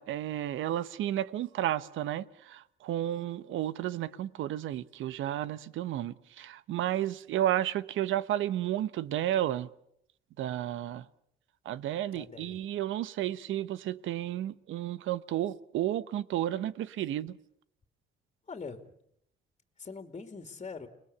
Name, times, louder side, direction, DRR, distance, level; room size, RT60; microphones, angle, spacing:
voice 1, 0.0-9.7 10.4-11.0 11.6-17.3, right 12 dB, 80° right, 1.0 m, -32 dB
voice 2, 12.1-12.6 18.5-19.0 19.8-20.9, left 4 dB, 30° left, 2.5 m, -43 dB
30.0 x 20.0 x 7.0 m
cardioid pair, 90°, 20 cm